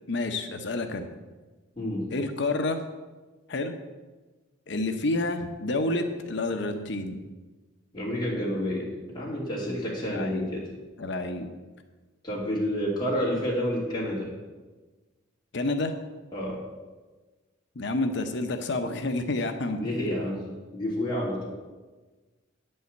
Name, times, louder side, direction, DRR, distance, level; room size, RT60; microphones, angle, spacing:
voice 1, 0.1-1.1 2.1-2.8 3.5-3.8 4.7-7.2 10.1-10.5 11.0-11.5 15.5-15.9 17.8-19.8, left 2 dB, 55° left, 7 dB, 0.7 m, -29 dB
voice 2, 1.8-2.1 7.9-10.7 12.2-14.3 16.3-16.6 19.7-20.4 20.7-21.5, equal, 20° left, -5 dB, 2.8 m, -29 dB
9.4 x 5.6 x 7.9 m, 1.3 s
head